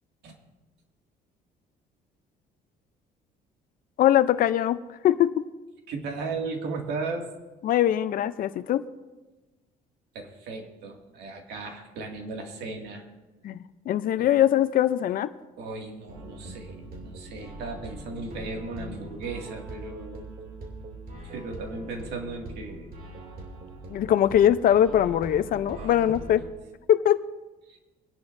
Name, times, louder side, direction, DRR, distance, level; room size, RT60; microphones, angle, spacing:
voice 1, 4.0-5.5 7.6-8.9 13.4-13.6 13.9-15.3 23.9-26.4 26.9-27.2, left 11 dB, 60° left, 13 dB, 0.6 m, -22 dB
voice 2, 5.9-7.3 10.1-13.1 14.2-14.3 15.6-20.3 21.2-22.9 25.8-26.1 27.7-27.8, right 3 dB, 80° right, 2 dB, 2.2 m, -36 dB
sound 1, 16.1-26.5, right 2 dB, 60° right, 2.7 m, -41 dB
24.5 x 10.5 x 2.6 m, 1.1 s
cardioid pair, 110°, 17 cm